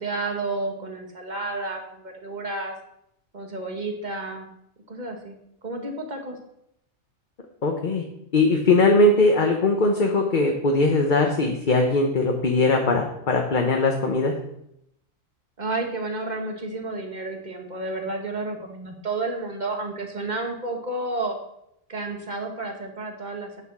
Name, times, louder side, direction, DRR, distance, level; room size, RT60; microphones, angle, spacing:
voice 1, 0.0-2.7 3.3-4.5 4.9-5.4 5.6-6.4 15.6-21.4 21.9-23.6, right 2 dB, 35° right, 3 dB, 1.7 m, -31 dB
voice 2, 7.6-8.0 8.3-14.3, left 2 dB, 40° left, 2 dB, 1.1 m, -20 dB
9.0 x 7.0 x 6.1 m, 0.77 s
omnidirectional pair, 1.4 m